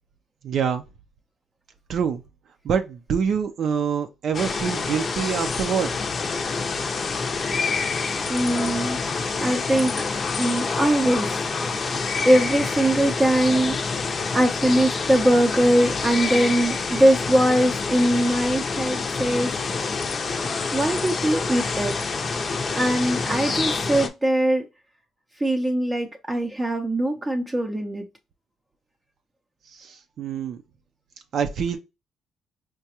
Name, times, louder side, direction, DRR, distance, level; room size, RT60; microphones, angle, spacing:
voice 1, 0.4-0.8 1.9-2.2 2.6-5.9 29.7-30.6 31.3-31.8, right 7 dB, 65° right, 0.5 m, -25 dB
sound 1, 4.3-24.1, left 4 dB, 40° left, 0.6 m, -27 dB
voice 2, 8.3-9.0 9.4-9.9 10.4-11.4 12.3-13.8 14.3-19.6 20.7-21.9 22.8-24.7 25.4-28.1, right 1 dB, 20° right, 0.6 m, -21 dB
4.7 x 2.2 x 2.8 m
cardioid pair, 90°, 0 cm